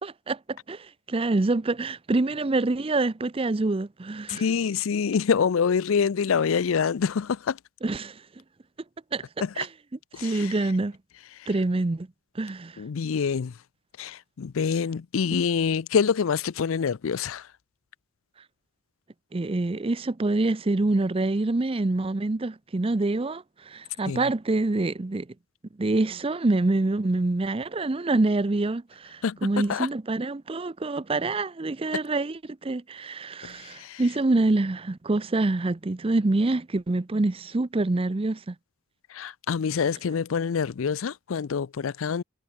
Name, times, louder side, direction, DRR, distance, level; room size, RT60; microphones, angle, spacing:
voice 1, 0.0-4.4 7.8-8.2 9.1-9.2 9.6-9.7 10.2-11.0 11.5-12.1 12.4-12.8 15.3-15.4 19.3-25.3 25.8-38.5, right 2 dB, 25° right, 0.5 m, -26 dB
voice 2, 4.3-7.6 9.4-9.5 10.1-10.6 11.4-11.5 12.8-13.6 14.0-17.5 24.1-24.2 29.2-29.9 33.4-34.0 39.1-42.2, left 6 dB, 75° left, 0.5 m, -26 dB
head